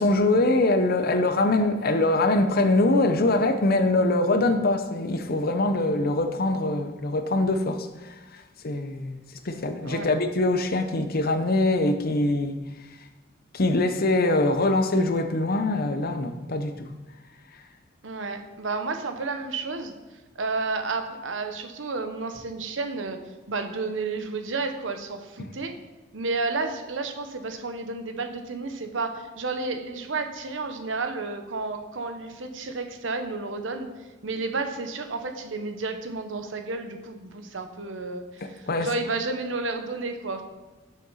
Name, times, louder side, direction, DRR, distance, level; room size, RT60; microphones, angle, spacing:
voice 1, 0.0-12.6 13.5-16.9 25.4-25.5 38.4-38.9, left 2 dB, 50° left, 0.7 m, -23 dB
voice 2, 18.0-19.9 20.4-23.2 23.5-25.7 26.1-33.9 34.2-40.4, right 3 dB, 75° right, 1.0 m, -31 dB
6.6 x 6.5 x 5.6 m
head